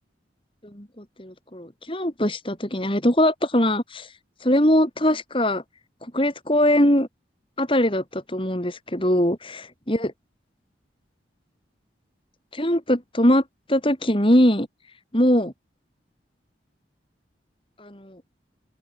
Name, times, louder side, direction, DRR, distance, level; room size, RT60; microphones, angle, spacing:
voice 1, 0.7-4.1 4.4-5.6 6.0-7.1 7.6-10.1 12.5-13.4 13.7-14.7 15.1-15.5 17.8-18.2, left 1 dB, 30° left, 5.1 m, -21 dB
open air
head